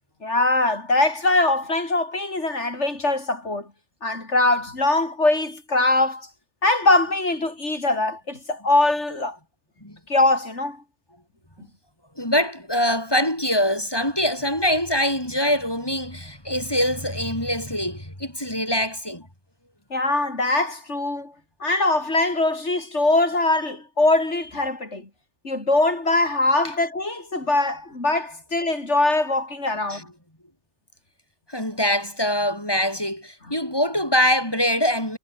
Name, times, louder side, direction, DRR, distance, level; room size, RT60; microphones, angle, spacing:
voice 1, 0.2-3.7 4.0-6.3 6.6-9.4 10.1-10.8 19.9-21.3 21.6-25.1 25.4-30.1, left 2 dB, 90° left, 5.1 m, -22 dB
voice 2, 12.2-19.2 29.9-30.0 31.5-35.2, equal, 20° left, 5.6 m, -24 dB
omnidirectional pair, 1.2 m